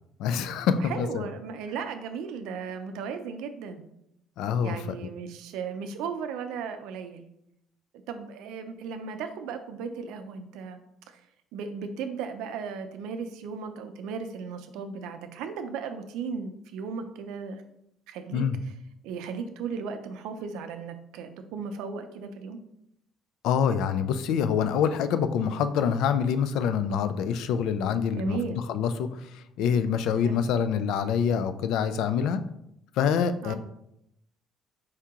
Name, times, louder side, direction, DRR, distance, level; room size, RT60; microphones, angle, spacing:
voice 1, 0.2-1.3 4.4-4.8 18.3-18.6 23.4-28.4 28.7-32.4 33.0-33.5, left 7 dB, 75° left, 11 dB, 0.3 m, -26 dB
voice 2, 0.8-3.8 4.6-7.3 8.1-10.8 11.1-11.2 11.5-17.6 18.1-18.7 19.0-22.6 28.1-28.6 30.2-30.4 33.4-33.6, right 5 dB, 90° right, 7 dB, 0.5 m, -36 dB
4.7 x 2.8 x 3.6 m, 0.78 s
cardioid pair, 145°, 0 cm